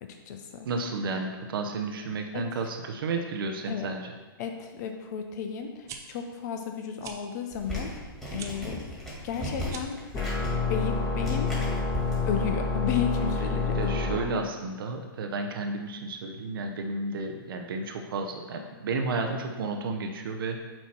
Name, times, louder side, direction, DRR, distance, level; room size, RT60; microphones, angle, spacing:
voice 1, 0.0-0.7 2.3-2.5 3.7-3.9 4.4-8.0 8.3-8.8 9.2-10.0 10.7-11.5 12.3-14.3, left 7 dB, 45° left, 5 dB, 0.6 m, -33 dB
voice 2, 0.6-4.1 13.7-20.6, right 3 dB, 70° right, 4 dB, 0.8 m, -32 dB
sound 1, 5.7-6.0 7.0-7.2 8.3-8.5 9.6-10.0, right 7 dB, 25° right, 0.6 m, -42 dB
sound 2, 7.5-12.2, equal, 5° left, 1.9 m, -37 dB
sound 3, 10.1-14.2, left 3 dB, 30° left, 1.6 m, -28 dB
8.7 x 3.0 x 4.3 m, 1.3 s
hypercardioid pair, 130°, 12 cm